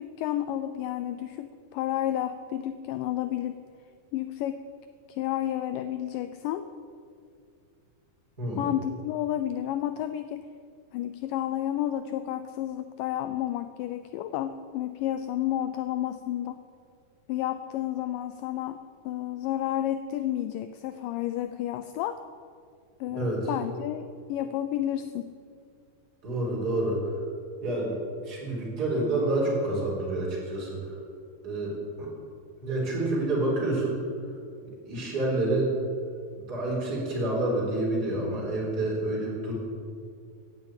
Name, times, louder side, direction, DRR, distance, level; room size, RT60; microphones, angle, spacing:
voice 1, 0.0-3.6 4.1-4.6 5.1-6.6 8.6-10.5 10.9-16.6 17.3-18.8 19.1-22.2 23.0-25.3, left 12 dB, 80° left, 10 dB, 2.1 m, -31 dB
voice 2, 23.2-23.5 26.2-27.2 27.6-27.9 28.2-31.0 31.4-32.1 32.6-34.0 34.6-35.7 36.5-39.5, right 2 dB, 25° right, -4 dB, 4.1 m, -28 dB
16.0 x 9.0 x 8.9 m, 2.3 s
omnidirectional pair, 4.1 m